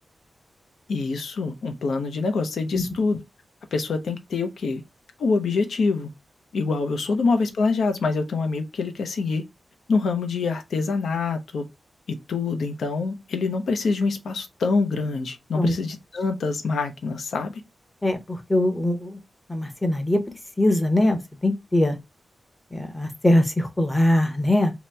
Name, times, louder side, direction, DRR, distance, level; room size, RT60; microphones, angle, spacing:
voice 1, 0.9-3.2 3.7-4.8 5.2-6.1 6.5-9.4 9.9-11.6 12.1-17.6, left 4 dB, 90° left, 0.6 m, -25 dB
voice 2, 18.0-19.2 19.5-20.2 20.6-22.0 22.7-24.7, left 1 dB, 15° left, 0.7 m, -22 dB
2.8 x 2.1 x 3.3 m
wide cardioid pair, 110°, 0 cm